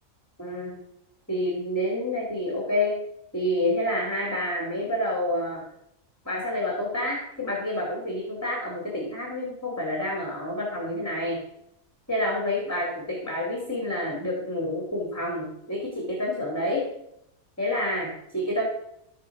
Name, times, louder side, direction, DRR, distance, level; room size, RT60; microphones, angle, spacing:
voice 1, 0.4-0.8 1.3-3.0 3.3-5.6 6.2-11.4 12.1-16.9 17.6-18.6, left 1 dB, 10° left, -2 dB, 2.4 m, -28 dB
12.0 x 8.4 x 4.8 m, 0.79 s
omnidirectional pair, 1.7 m